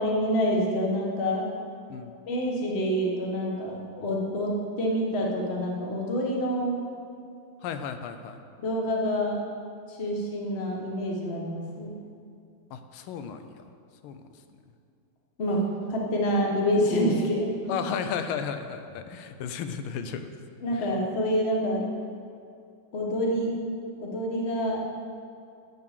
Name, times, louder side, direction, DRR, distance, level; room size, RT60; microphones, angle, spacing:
voice 1, 0.0-1.4 2.3-6.8 8.6-9.4 9.9-11.9 15.4-15.6 15.9-17.8 20.6-21.9 22.9-23.5 24.0-24.8, equal, 35° left, -1 dB, 1.2 m, -27 dB
voice 2, 7.6-8.4 12.7-13.7 14.0-14.2 17.7-20.3 20.7-20.9, left 7 dB, 90° left, 8 dB, 1.5 m, -34 dB
8.5 x 6.7 x 6.4 m, 2.4 s
omnidirectional pair, 2.3 m